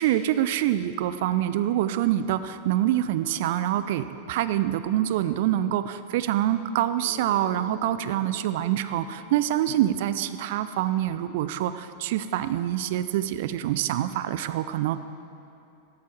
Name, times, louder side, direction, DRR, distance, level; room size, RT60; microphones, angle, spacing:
voice 1, 0.0-15.0, right 12 dB, 50° right, 13 dB, 0.4 m, -26 dB
Bass guitar, 7.0-11.3, left 8 dB, 50° left, 1.8 m, -46 dB
13.0 x 11.0 x 4.5 m, 2.7 s
figure-of-eight pair, 90°, 0 cm